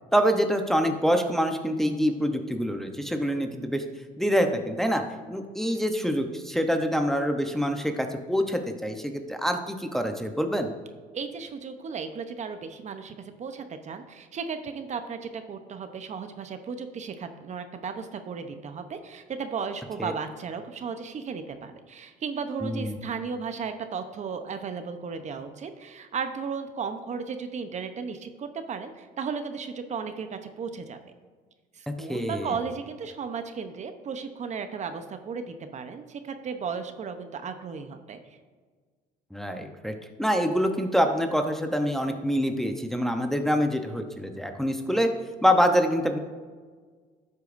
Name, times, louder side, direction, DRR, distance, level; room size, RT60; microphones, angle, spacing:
voice 1, 0.1-3.8 4.2-5.0 5.3-10.7 20.0-20.1 22.6-23.0 31.9-32.6 39.3-45.1 45.4-46.2, equal, ahead, 4 dB, 0.8 m, -26 dB
voice 2, 11.1-31.0 31.7-38.4, right 5 dB, 45° right, 8 dB, 0.8 m, -35 dB
11.5 x 8.3 x 2.6 m, 1.5 s
cardioid pair, 110°, 17 cm